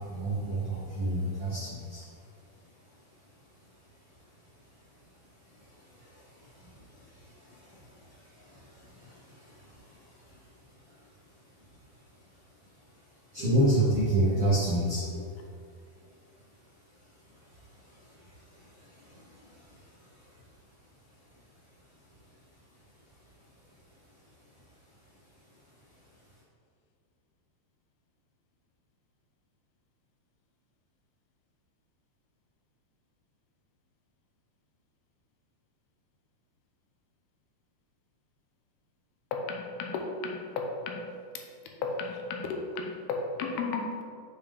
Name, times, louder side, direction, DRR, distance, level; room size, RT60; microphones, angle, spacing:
voice 1, 0.0-26.3, right 1 dB, 75° right, -9 dB, 1.3 m, -35 dB
voice 2, 39.3-41.1 41.3-41.4 41.8-44.0, left 4 dB, 85° left, 2 dB, 2.7 m, -34 dB
7.1 x 5.3 x 3.5 m, 2.3 s
omnidirectional pair, 4.4 m